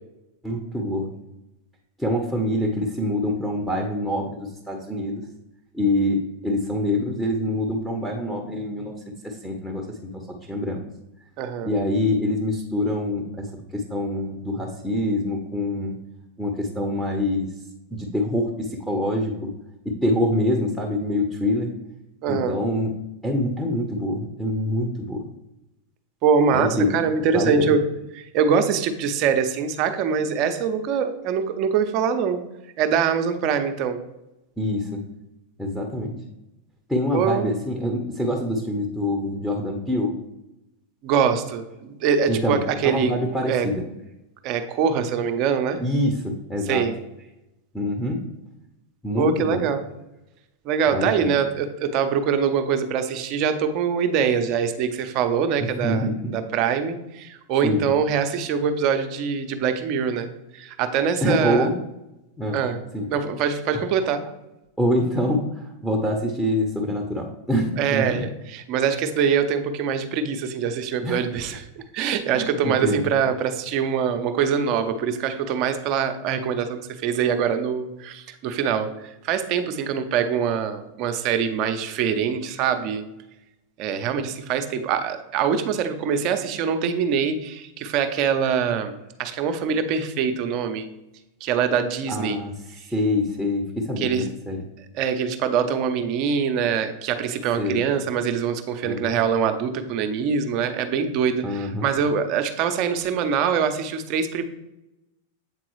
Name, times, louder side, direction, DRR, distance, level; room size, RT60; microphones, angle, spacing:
voice 1, 0.4-1.1 2.0-5.2 5.7-8.9 9.2-10.2 10.5-10.8 11.6-13.5 13.7-16.0 16.4-17.5 17.9-19.5 19.8-21.7 22.3-22.9 23.2-25.2 26.5-27.0 27.3-27.7 34.6-35.0 35.6-36.1 36.9-40.1 42.3-43.8 45.8-46.8 47.7-48.2 49.0-49.6 50.9-51.3 55.6-56.3 57.6-57.9 61.2-61.8 62.4-62.6 62.9-63.1 64.8-68.0 71.0-71.2 72.3-73.0 92.1-92.5 92.9-94.6 97.6-97.8 98.8-99.1 101.4-101.9, left 1 dB, ahead, 0 dB, 0.9 m, -25 dB
voice 2, 11.4-11.7 22.2-22.6 26.2-27.8 28.1-32.4 32.8-34.0 37.1-37.5 41.0-43.1 43.5-43.7 44.4-45.8 46.7-47.0 49.2-49.8 50.6-61.7 62.5-62.8 63.1-64.2 67.8-71.7 71.9-83.0 83.8-88.9 89.2-90.9 91.4-92.4 94.0-94.3 94.9-104.4, right 7 dB, 45° right, 7 dB, 0.7 m, -24 dB
8.0 x 3.8 x 3.1 m, 0.93 s
hypercardioid pair, 95°, 0 cm